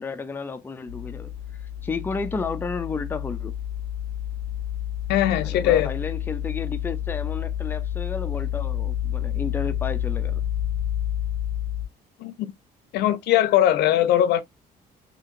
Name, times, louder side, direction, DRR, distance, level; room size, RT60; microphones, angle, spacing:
voice 1, 0.0-1.3 1.8-3.5 5.4-10.4, left 4 dB, 10° left, 0.4 m, -32 dB
sound 1, 0.9-11.9, left 11 dB, 65° right, 1.2 m, -29 dB
voice 2, 5.1-5.9 12.2-12.5 12.9-14.4, left 12 dB, 80° left, 0.6 m, -20 dB
2.8 x 2.8 x 2.4 m
cardioid pair, 110°, 17 cm